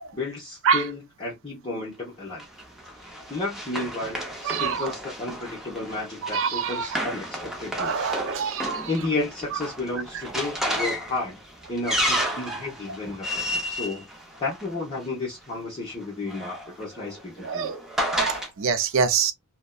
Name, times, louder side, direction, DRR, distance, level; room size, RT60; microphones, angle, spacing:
voice 1, 0.1-2.4 3.0-8.1 8.4-8.5 8.9-11.4 11.7-14.1 14.4-17.7, left 2 dB, 25° left, 0.9 m, -32 dB
Run, 2.4-15.0 16.0-18.5, equal, ahead, 0.6 m, -32 dB
voice 2, 4.4-4.9 6.3-7.0 7.8-8.9 17.4-17.8 18.1-19.3, right 6 dB, 60° right, 0.4 m, -25 dB
2.5 x 2.1 x 2.3 m
head